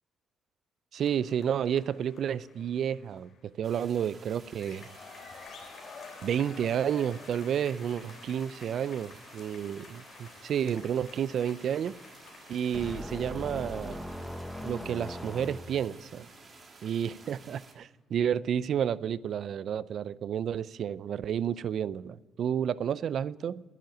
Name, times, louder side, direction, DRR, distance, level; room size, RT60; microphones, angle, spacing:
sound 1, 0.9-3.4 4.3-13.3, left 5 dB, 60° left, 3.4 m, -51 dB
voice 1, 0.9-4.9 6.2-12.0 12.5-14.0 14.6-16.3 16.8-23.6, right 9 dB, 65° right, 0.4 m, -31 dB
sound 2, 3.6-17.7, right 3 dB, 40° right, 3.6 m, -53 dB
sound 3, 12.7-16.0, left 1 dB, 10° left, 1.3 m, -39 dB
11.0 x 10.5 x 8.9 m
cardioid pair, 90°, 0 cm